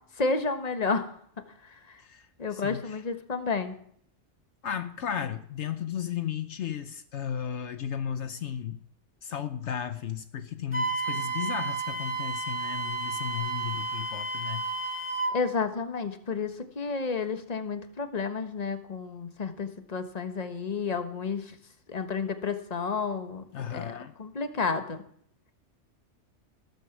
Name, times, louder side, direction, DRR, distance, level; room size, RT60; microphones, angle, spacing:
voice 1, 0.2-1.1 1.7-2.0 2.4-3.8 15.3-21.5 21.9-23.4 23.7-23.9 24.2-25.0, left 4 dB, 35° left, 8 dB, 1.3 m, -31 dB
voice 2, 2.0-3.0 4.6-8.8 9.2-14.6 23.5-24.1, left 8 dB, 70° left, 10 dB, 1.1 m, -34 dB
Wind instrument woodwind instrument, 10.7-15.4, right 3 dB, 10° left, 2.0 m, -32 dB
17.5 x 8.0 x 7.2 m, 0.63 s
omnidirectional pair, 1.2 m